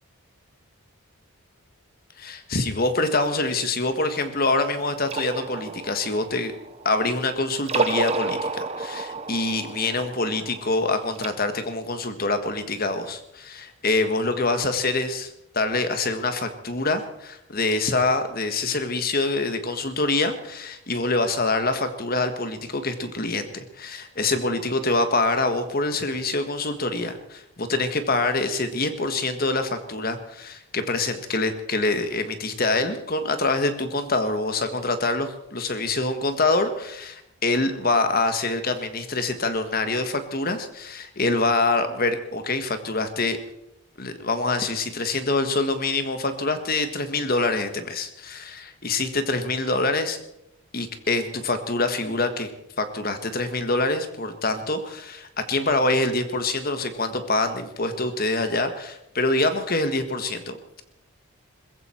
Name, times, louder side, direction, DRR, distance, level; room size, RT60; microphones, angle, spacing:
voice 1, 2.2-6.5 6.8-43.4 44.0-50.2 50.7-52.5 52.8-60.8, left 2 dB, 40° left, 8 dB, 1.5 m, -25 dB
sound 1, 5.0-7.2 7.6-11.3, right 3 dB, 25° right, 0.7 m, -31 dB
21.5 x 15.0 x 4.5 m, 0.82 s
head